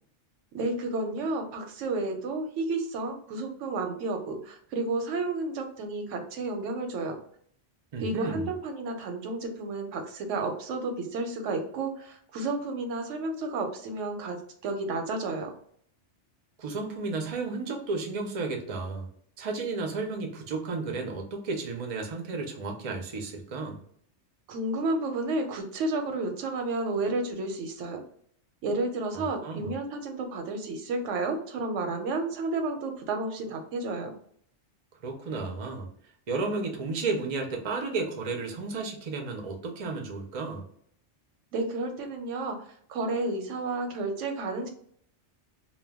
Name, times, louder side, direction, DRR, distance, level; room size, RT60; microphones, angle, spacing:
voice 1, 0.5-7.2 8.0-15.5 24.5-28.0 28.6-34.1 41.5-42.6 42.9-44.7, right 2 dB, 90° right, 5 dB, 0.9 m, -31 dB
voice 2, 7.9-8.5 16.6-19.1 19.4-23.8 29.1-29.7 35.0-35.9 36.3-40.6, right 3 dB, 50° right, 2 dB, 0.4 m, -33 dB
2.2 x 2.1 x 3.4 m, 0.63 s
omnidirectional pair, 1.2 m